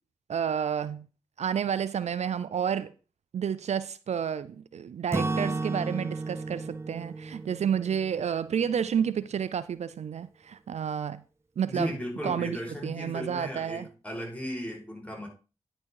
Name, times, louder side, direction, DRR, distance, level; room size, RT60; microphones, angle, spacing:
voice 1, 0.3-1.1 1.4-2.9 3.3-11.2 11.6-11.9 12.2-12.6 12.8-13.9, right 8 dB, 70° right, 0.5 m, -30 dB
Acoustic guitar / Strum, 5.1-9.1, right 3 dB, 20° right, 0.7 m, -34 dB
voice 2, 11.7-15.3, equal, 10° left, 5.1 m, -36 dB
10.0 x 6.2 x 4.7 m
cardioid pair, 40°, 12 cm